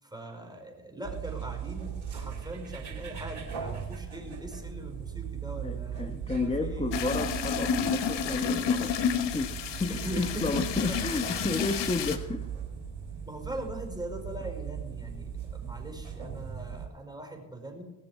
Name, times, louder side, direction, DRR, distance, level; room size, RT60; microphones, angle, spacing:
voice 1, 0.0-6.9 9.9-10.4 10.9-11.0 13.3-17.8, right 1 dB, 10° right, 2 dB, 5.1 m, -41 dB
sound 1, 1.0-16.9, right 8 dB, 80° right, 3.0 m, -38 dB
voice 2, 5.6-9.0 9.3-12.5, left 3 dB, 15° left, 8 dB, 1.1 m, -32 dB
sound 2, 6.9-12.2, left 7 dB, 60° left, 1.4 m, -30 dB
19.0 x 7.0 x 7.4 m, 1.1 s
hypercardioid pair, 40°, 48 cm